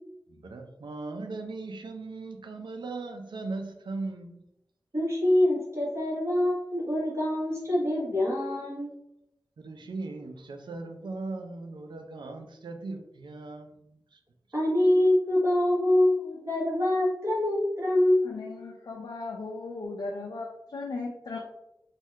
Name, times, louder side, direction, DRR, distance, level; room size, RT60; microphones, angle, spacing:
voice 1, 0.3-4.4 9.6-14.2, right 3 dB, 85° right, 5 dB, 0.4 m, -38 dB
voice 2, 4.9-8.9 14.5-18.5, left 1 dB, 35° right, -5 dB, 1.2 m, -25 dB
voice 3, 18.2-21.4, left 3 dB, 65° left, 1 dB, 0.4 m, -37 dB
2.8 x 2.3 x 3.2 m, 0.82 s
wide cardioid pair, 55°, 8 cm